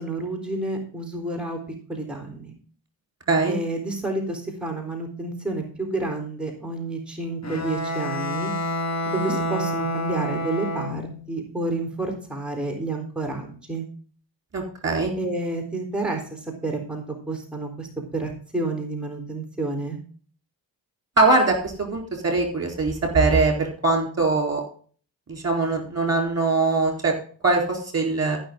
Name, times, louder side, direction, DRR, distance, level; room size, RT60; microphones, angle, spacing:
voice 1, 0.0-1.6 1.9-2.5 3.5-8.5 9.1-13.9 15.2-20.0, right 2 dB, ahead, 3 dB, 3.9 m, -30 dB
voice 2, 3.3-3.6 14.5-15.1 21.2-24.6 25.3-27.1 27.4-28.4, right 3 dB, 35° right, 2 dB, 4.1 m, -22 dB
Bowed string instrument, 7.4-11.2, equal, 40° left, 2.6 m, -28 dB
14.5 x 6.4 x 3.8 m, 0.43 s
supercardioid pair, 50°, 43 cm